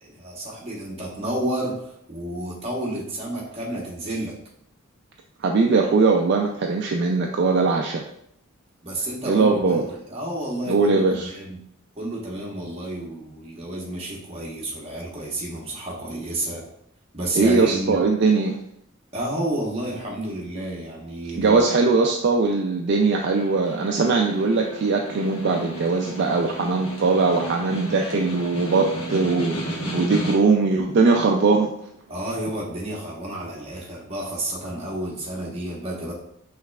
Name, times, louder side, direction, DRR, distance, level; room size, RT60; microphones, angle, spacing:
voice 1, 0.0-4.3 8.8-11.6 12.0-16.6 17.1-18.0 19.1-21.6 32.1-36.1, right 1 dB, 25° right, -4 dB, 1.0 m, -30 dB
voice 2, 5.4-8.0 9.2-9.9 10.7-11.3 17.3-18.6 21.4-31.7, right 4 dB, 50° right, 2 dB, 0.3 m, -20 dB
Snare drum, 23.3-30.7, right 1 dB, 75° left, 1.2 m, -33 dB
5.7 x 3.1 x 2.3 m, 0.72 s
head